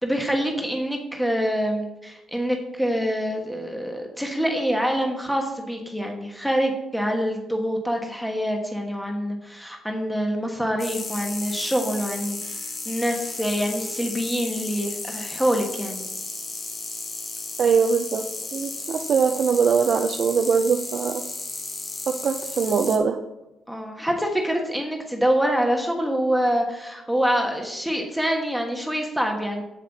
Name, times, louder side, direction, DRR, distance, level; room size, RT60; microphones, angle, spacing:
voice 1, 0.0-16.0 23.7-29.6, equal, ahead, 1 dB, 1.2 m, -25 dB
sound 1, 10.8-23.0, left 3 dB, 40° left, 1.8 m, -34 dB
voice 2, 17.6-18.2 18.5-21.2 22.1-23.2, right 6 dB, 55° right, 5 dB, 0.5 m, -22 dB
7.5 x 7.4 x 4.0 m, 0.97 s
cardioid pair, 90°, 0 cm